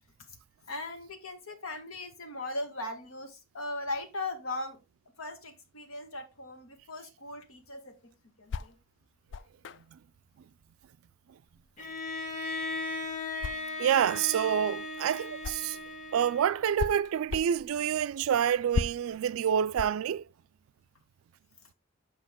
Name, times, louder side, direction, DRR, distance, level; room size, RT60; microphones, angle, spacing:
voice 1, 0.7-4.8 5.2-8.0 8.4-8.7, left 2 dB, 90° left, 1.6 m, -38 dB
sound 1, 7.4-15.9 16.3-21.1, left 5 dB, 60° left, 0.3 m, -39 dB
Bowed string instrument, 11.8-16.8, left 2 dB, 35° left, 1.3 m, -37 dB
voice 2, 13.8-15.8 16.1-20.2, right 9 dB, 80° right, 0.3 m, -27 dB
7.7 x 5.3 x 3.6 m
head